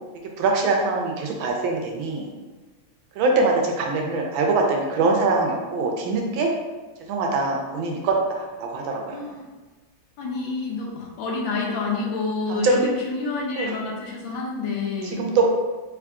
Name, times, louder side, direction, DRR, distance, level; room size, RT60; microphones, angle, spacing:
voice 1, 0.4-2.3 3.2-6.5 7.1-9.2 12.5-12.9 13.6-13.8 15.1-15.4, right 3 dB, 75° right, 1 dB, 1.3 m, -23 dB
voice 2, 9.1-9.5 10.2-15.2, left 3 dB, 75° left, -2 dB, 1.3 m, -28 dB
3.4 x 3.4 x 2.4 m, 1.2 s
omnidirectional pair, 2.3 m